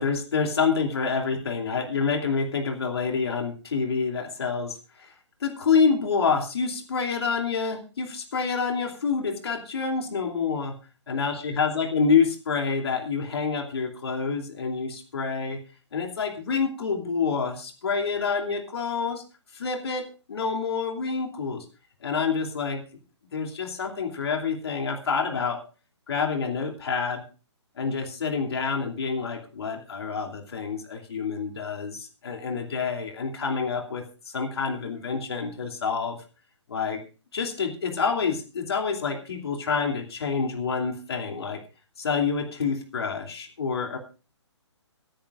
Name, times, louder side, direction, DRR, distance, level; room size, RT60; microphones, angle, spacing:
voice 1, 0.0-5.1 5.4-10.8 11.1-15.6 15.9-19.2 19.5-21.6 22.0-22.8 23.3-25.6 26.1-27.3 27.8-36.2 36.7-37.0 37.3-41.6 42.0-44.0, left 5 dB, 60° left, 3 dB, 2.8 m, -27 dB
23.5 x 10.0 x 2.5 m, 0.34 s
figure-of-eight pair, 140°, 15 cm